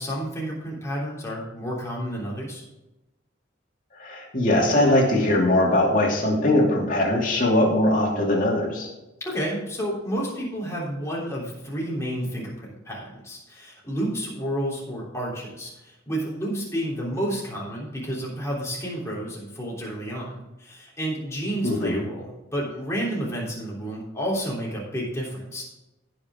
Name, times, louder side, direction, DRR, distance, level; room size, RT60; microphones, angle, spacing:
voice 1, 0.0-2.6 9.2-25.6, equal, 15° left, -5 dB, 3.4 m, -30 dB
voice 2, 4.0-8.9 21.6-22.0, left 1 dB, 45° left, -2 dB, 2.7 m, -21 dB
16.5 x 6.3 x 3.7 m, 0.99 s
head